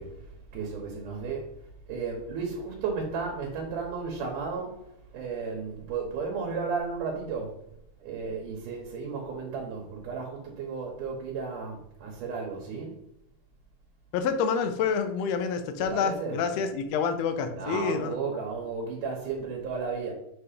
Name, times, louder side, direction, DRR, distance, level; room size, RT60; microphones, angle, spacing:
voice 1, 0.0-7.6 8.0-13.0 15.8-16.5 17.5-20.1, right 5 dB, 90° right, 2.6 m, -34 dB
voice 2, 14.1-18.1, left 6 dB, 75° left, 1.6 m, -28 dB
6.8 x 2.8 x 5.0 m
omnidirectional pair, 3.5 m